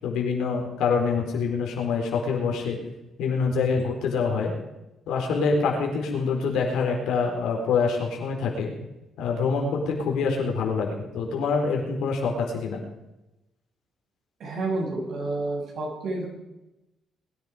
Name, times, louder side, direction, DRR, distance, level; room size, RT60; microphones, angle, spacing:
voice 1, 0.0-2.8 3.2-4.5 5.1-8.7 9.2-12.8, left 5 dB, 85° left, 0 dB, 4.3 m, -25 dB
voice 2, 14.4-16.3, right 2 dB, 65° right, -1 dB, 6.7 m, -29 dB
21.5 x 10.5 x 5.1 m, 0.95 s
cardioid pair, 90°, 0 cm